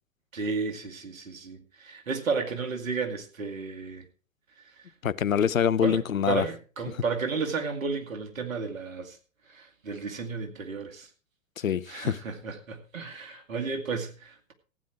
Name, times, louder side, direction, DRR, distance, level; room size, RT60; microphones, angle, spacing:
voice 1, 0.3-4.1 4.8-4.9 5.8-9.2 9.5-11.1 11.9-14.5, right 4 dB, 80° right, 2.4 m, -33 dB
voice 2, 5.0-6.5 11.6-12.2, left 8 dB, 85° left, 0.8 m, -25 dB
15.0 x 9.3 x 4.6 m
figure-of-eight pair, 105°, 40 cm